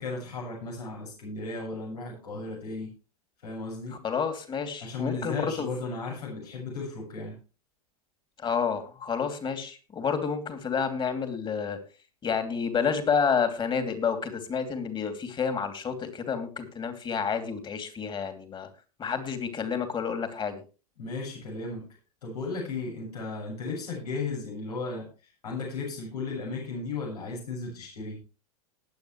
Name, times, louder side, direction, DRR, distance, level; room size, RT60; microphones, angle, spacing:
voice 1, 0.0-2.9 3.4-4.0 4.8-7.3 21.0-21.8 22.2-28.2, left 3 dB, 80° left, -2 dB, 6.7 m, -35 dB
voice 2, 4.0-5.7 8.4-11.8 12.2-18.7 19.0-20.6, left 6 dB, 25° left, 9 dB, 3.0 m, -29 dB
20.0 x 8.9 x 3.2 m, 0.33 s
hypercardioid pair, 105°, 20 cm